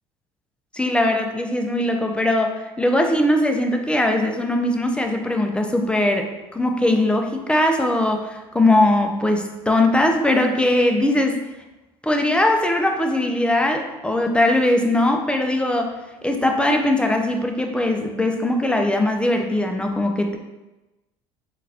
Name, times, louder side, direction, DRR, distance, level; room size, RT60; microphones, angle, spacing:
voice 1, 0.7-11.4 12.0-15.9 16.2-20.4, left 1 dB, 5° left, 3 dB, 0.4 m, -20 dB
3.8 x 2.4 x 2.8 m, 1.1 s
supercardioid pair, 80°, 14 cm